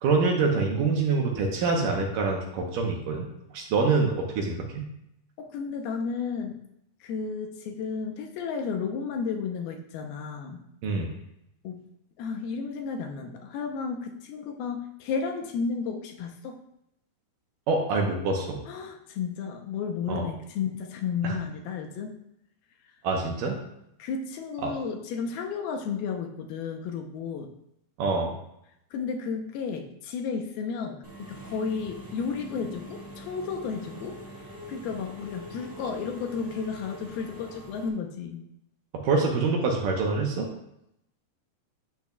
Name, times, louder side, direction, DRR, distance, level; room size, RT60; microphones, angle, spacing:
voice 1, 0.0-3.3 3.5-4.9 10.8-11.1 17.7-18.6 20.1-20.2 21.2-21.4 23.0-23.6 24.6-24.7 28.0-28.3 38.9-40.5, right 4 dB, 70° right, 0 dB, 2.4 m, -25 dB
voice 2, 5.4-6.6 7.0-10.6 11.6-11.8 12.2-16.6 18.7-22.1 24.0-27.5 28.9-34.2 34.7-38.4, left 5 dB, 80° left, 3 dB, 2.6 m, -33 dB
Engine / Mechanisms, 31.0-37.9, equal, 10° right, 0.9 m, -43 dB
10.5 x 8.1 x 2.4 m, 0.79 s
omnidirectional pair, 4.5 m